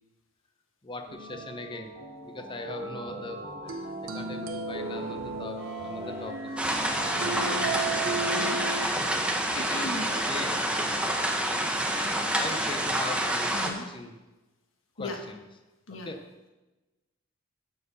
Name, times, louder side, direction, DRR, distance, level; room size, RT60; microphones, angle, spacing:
voice 1, 0.8-1.9 2.2-6.4 6.8-7.7 10.3-10.6 11.8-12.0 12.4-14.1 15.0-15.4 16.0-16.2, left 2 dB, 25° left, 4 dB, 0.8 m, -40 dB
sound 1, 1.1-8.4, right 1 dB, 30° right, 2.8 m, -40 dB
sound 2, 3.7-8.9, right 4 dB, 90° right, 0.7 m, -35 dB
sound 3, 6.6-13.7, right 1 dB, 5° right, 0.9 m, -28 dB
voice 2, 7.0-8.6 9.5-10.1 13.5-13.9 15.0-15.2 15.9-16.1, left 2 dB, 80° left, 2 dB, 1.4 m, -38 dB
13.0 x 4.6 x 5.5 m, 1.1 s
head